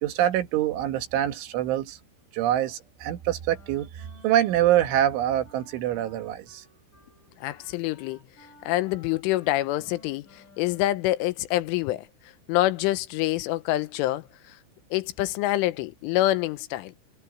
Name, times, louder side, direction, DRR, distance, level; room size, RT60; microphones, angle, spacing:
voice 1, 0.0-2.0 2.3-6.6, right 12 dB, 80° right, 4.1 m, -25 dB
Wind instrument woodwind instrument, 3.5-11.0, left 2 dB, 45° left, 8.3 m, -56 dB
voice 2, 7.4-8.2 8.7-12.1 12.5-14.6 14.9-16.9, left 16 dB, 90° left, 3.4 m, -26 dB
omnidirectional pair, 5.5 m